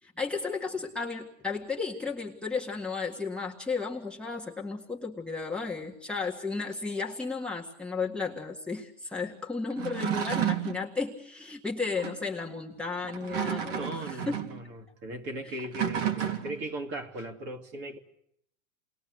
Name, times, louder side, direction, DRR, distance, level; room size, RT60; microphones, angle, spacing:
voice 1, 0.0-14.4 15.4-15.6, left 4 dB, 5° left, 1.7 m, -34 dB
sound 1, 9.7-10.8 12.0-12.2 13.0-14.6 15.6-16.7, right 9 dB, 50° right, 3.4 m, -31 dB
voice 2, 13.8-18.0, right 1 dB, 30° right, 2.7 m, -38 dB
29.0 x 20.5 x 8.0 m
supercardioid pair, 150°, 39 cm